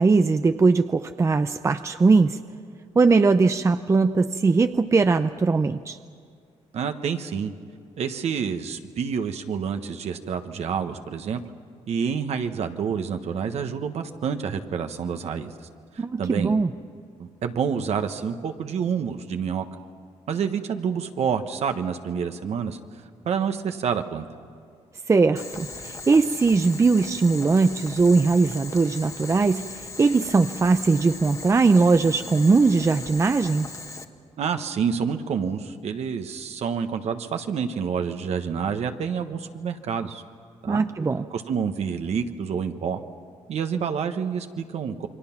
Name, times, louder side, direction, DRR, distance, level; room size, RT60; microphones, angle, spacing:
voice 1, 0.0-2.4 3.0-6.0 16.0-16.7 25.1-33.7 40.7-41.2, right 4 dB, 25° right, 9 dB, 0.6 m, -20 dB
voice 2, 6.7-7.5 8.0-11.4 11.9-15.5 15.9-16.6 17.2-19.6 20.3-22.8 23.2-24.3 34.4-40.2 40.6-40.8 41.3-43.0 43.5-45.1, right 7 dB, 65° right, 7 dB, 1.3 m, -28 dB
Boiling, 25.4-34.0, left 3 dB, 25° left, 1.4 m, -39 dB
29.0 x 22.5 x 5.9 m, 2.3 s
cardioid pair, 100°, 12 cm